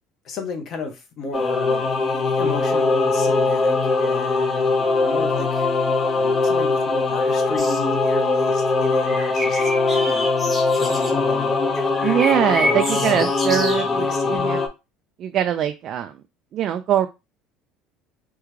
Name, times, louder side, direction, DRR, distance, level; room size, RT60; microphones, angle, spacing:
voice 1, 0.2-5.7 6.1-9.7 10.0-10.3 10.7-12.2 12.6-14.5, left 4 dB, 45° left, 0.9 m, -33 dB
Singing / Musical instrument, 1.3-14.7, left 3 dB, 25° left, 0.5 m, -21 dB
sound 1, 7.6-7.8 9.0-11.1 11.9-14.0 14.3-14.4, equal, 5° left, 0.9 m, -29 dB
voice 2, 12.0-14.6 15.2-16.2 16.5-17.1, right 10 dB, 45° right, 0.3 m, -22 dB
3.6 x 2.2 x 3.1 m
cardioid pair, 135°, 0 cm